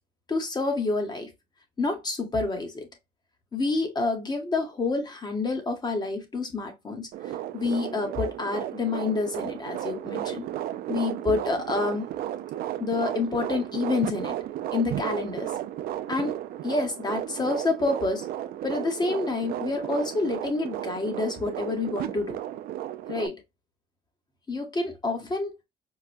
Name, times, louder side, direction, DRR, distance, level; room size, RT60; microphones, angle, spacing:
voice 1, 0.3-1.3 1.8-2.9 3.5-10.5 10.9-12.1 12.8-14.4 14.7-15.5 16.1-16.4 16.6-18.3 18.6-22.4 23.1-23.4 24.5-25.5, left 3 dB, 25° left, 1.0 m, -28 dB
sound 1, 7.1-23.3, right 12 dB, 65° right, 0.4 m, -34 dB
4.7 x 2.1 x 2.5 m
cardioid pair, 110°, 17 cm